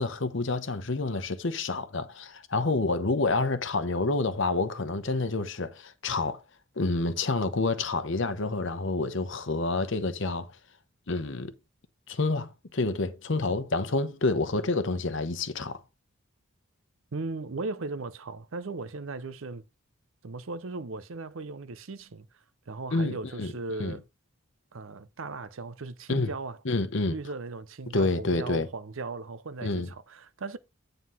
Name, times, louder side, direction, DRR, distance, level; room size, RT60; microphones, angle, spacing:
voice 1, 0.0-6.4 6.8-10.5 11.1-11.5 12.1-15.8 22.9-23.5 23.8-24.0 26.1-26.3 26.6-27.2 27.9-28.7 29.6-29.9, left 3 dB, 55° left, 0.9 m, -28 dB
voice 2, 17.1-19.6 20.2-22.3 22.7-24.0 24.7-26.6 27.1-30.6, right 3 dB, 70° right, 0.6 m, -37 dB
9.4 x 3.9 x 5.5 m
head